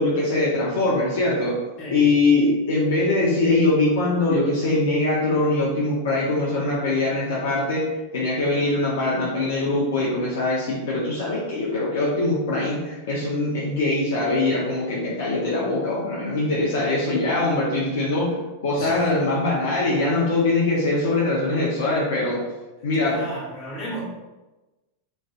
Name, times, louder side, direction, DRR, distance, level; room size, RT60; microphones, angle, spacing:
voice 1, 0.0-1.6 1.9-7.9 8.1-22.4 22.8-23.2, left 2 dB, 65° left, -5 dB, 0.7 m, -22 dB
voice 2, 1.8-2.1 18.7-19.0 23.0-24.0, equal, 35° left, -6 dB, 1.5 m, -34 dB
3.1 x 2.6 x 2.4 m, 1.1 s
hypercardioid pair, 95°, 0 cm